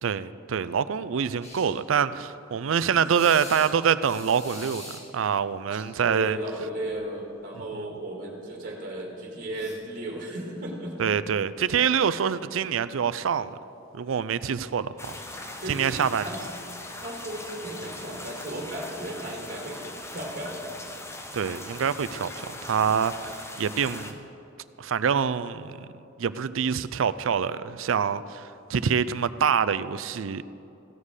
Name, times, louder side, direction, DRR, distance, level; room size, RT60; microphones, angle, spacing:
voice 1, 0.0-6.4 11.0-13.6 13.9-15.1 15.7-16.3 21.3-24.1 24.8-25.9 26.2-30.4, right 7 dB, 75° right, 0.4 m, -26 dB
sound 1, 1.4-1.7 3.1-3.7 4.0-5.0 6.4-6.6 6.9-7.0 9.5-9.7, left 1 dB, 35° left, 2.2 m, -43 dB
voice 2, 5.7-11.1 15.6-16.5 17.0-19.8 20.1-20.6, right 1 dB, 45° right, 2.0 m, -35 dB
sound 2, 15.0-24.1, left 2 dB, 15° left, 0.8 m, -40 dB
15.5 x 7.4 x 6.5 m
head